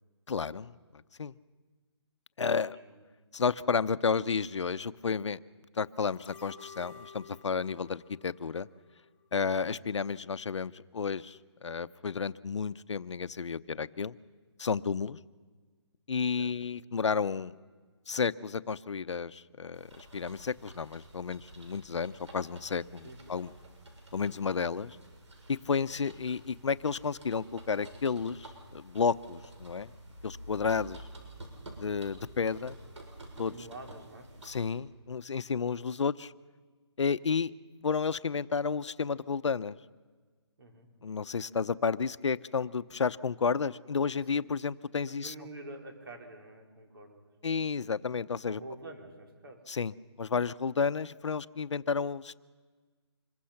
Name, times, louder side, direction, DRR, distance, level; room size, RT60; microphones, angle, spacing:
voice 1, 0.3-0.7 1.2-1.3 2.4-2.8 3.3-5.4 5.8-8.7 9.3-14.2 14.6-15.2 16.1-17.5 18.1-23.5 24.1-25.0 25.5-29.9 30.2-31.0 31.8-32.8 33.4-33.5 34.4-36.3 37.0-37.5 37.8-39.8 41.0-45.3 47.4-48.6 49.7-52.4, left 5 dB, 80° left, 16 dB, 0.7 m, -32 dB
voice 2, 2.7-3.0 9.4-9.7 16.4-16.5 23.0-23.5 33.3-34.3 40.6-40.9 44.1-44.4 45.1-47.2 48.5-49.6, right 2 dB, 55° right, 2 dB, 4.3 m, -48 dB
sound 1, 6.1-9.3 9.6-9.7, left 5 dB, 25° left, 1.3 m, -52 dB
sound 2, 19.7-34.7, right 1 dB, 85° right, 7.1 m, -50 dB
26.0 x 22.5 x 5.8 m, 1.4 s
hypercardioid pair, 175°, 15 cm